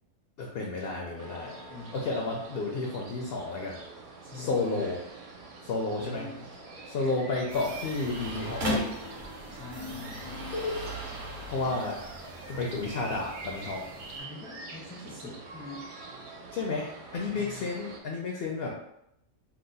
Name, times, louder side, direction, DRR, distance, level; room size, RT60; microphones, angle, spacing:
voice 1, 0.4-1.6 1.9-3.8 4.4-5.0 5.6-6.2 6.9-8.9 11.5-12.0 12.5-13.8 16.5-18.7, left 3 dB, 70° left, -1 dB, 0.6 m, -31 dB
sound 1, 1.2-18.0, right 3 dB, 75° right, 1.0 m, -45 dB
voice 2, 1.7-2.4 4.2-4.9 5.9-6.5 7.1-7.3 9.5-10.6 11.6-11.8 14.2-15.9 17.3-17.7, left 3 dB, 10° left, -6 dB, 0.4 m, -44 dB
sound 2, 5.6-10.8, left 3 dB, 90° left, 1.2 m, -43 dB
sound 3, 7.5-14.2, equal, 45° right, 0.7 m, -38 dB
2.9 x 2.0 x 3.9 m, 0.80 s
omnidirectional pair, 1.5 m